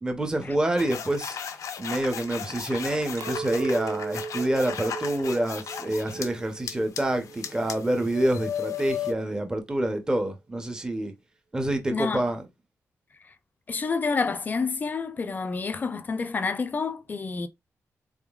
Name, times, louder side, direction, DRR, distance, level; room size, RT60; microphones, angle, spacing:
voice 1, 0.0-1.4 1.8-11.1 11.5-12.4, right 1 dB, 15° right, 0.7 m, -27 dB
sound 1, 0.8-6.3 6.7-9.1, left 8 dB, 75° left, 0.6 m, -36 dB
Chink clink, 3.2-8.5, right 5 dB, 90° right, 0.4 m, -38 dB
voice 2, 11.9-12.2 13.7-17.5, left 4 dB, 30° left, 0.5 m, -28 dB
3.9 x 3.6 x 2.3 m
wide cardioid pair, 170°, 6 cm